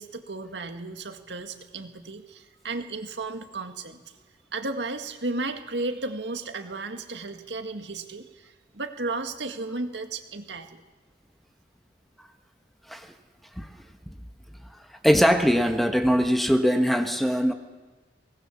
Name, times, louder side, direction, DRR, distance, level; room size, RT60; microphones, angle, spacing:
voice 1, 0.0-4.0 4.5-10.8, right 3 dB, 80° right, 6 dB, 1.9 m, -34 dB
voice 2, 15.0-17.5, equal, ahead, 6 dB, 1.2 m, -21 dB
23.0 x 19.5 x 7.3 m, 1.3 s
head